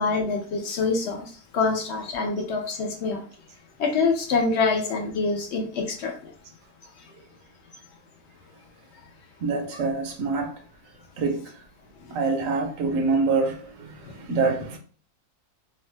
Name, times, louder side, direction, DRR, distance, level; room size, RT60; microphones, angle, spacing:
voice 1, 0.0-3.2 3.8-6.3, left 4 dB, 65° left, 0.7 m, -25 dB
voice 2, 9.4-10.6 11.2-11.6 12.1-14.8, right 4 dB, 70° right, 0.9 m, -26 dB
2.7 x 2.2 x 3.1 m
omnidirectional pair, 1.6 m